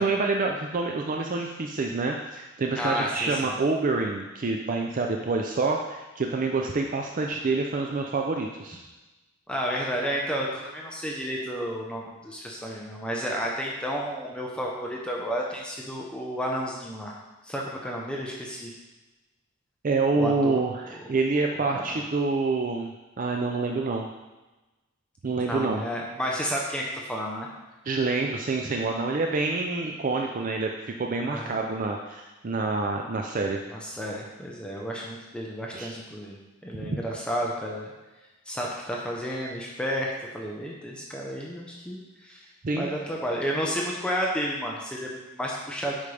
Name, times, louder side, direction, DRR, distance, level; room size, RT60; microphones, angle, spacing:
voice 1, 0.0-8.8 19.8-24.1 25.2-25.8 27.9-30.7 31.0-33.6 35.7-35.9 36.8-37.0 42.6-42.9, right 3 dB, 40° right, 2 dB, 0.5 m, -27 dB
voice 2, 2.8-3.5 9.5-17.1 17.4-18.7 20.1-20.6 21.7-21.9 25.4-27.5 31.3-31.6 33.7-37.9 38.5-42.4 42.8-46.0, equal, 5° left, -3 dB, 0.8 m, -31 dB
8.3 x 5.6 x 3.4 m, 1.1 s
head